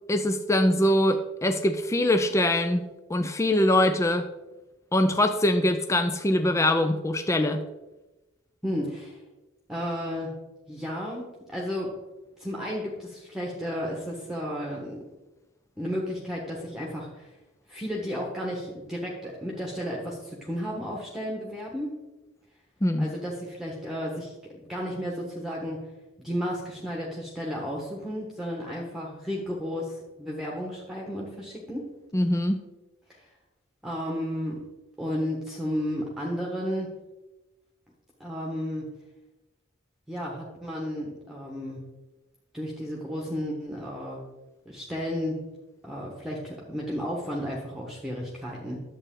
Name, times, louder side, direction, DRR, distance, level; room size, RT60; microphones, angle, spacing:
voice 1, 0.1-2.8 3.1-4.3 4.9-7.6 22.8-23.1 32.1-32.6, left 1 dB, 15° left, 7 dB, 0.5 m, -23 dB
voice 2, 8.6-9.2 9.7-10.4 10.7-11.2 11.5-11.9 12.4-15.0 15.8-17.3 17.7-21.9 23.0-24.3 24.6-25.8 26.2-31.9 33.2-33.3 33.8-34.6 35.0-36.9 38.2-38.9 40.1-41.8 42.5-44.2 44.6-45.4 45.8-48.8, equal, ahead, -3 dB, 1.3 m, -33 dB
11.0 x 7.9 x 3.7 m, 1.1 s
head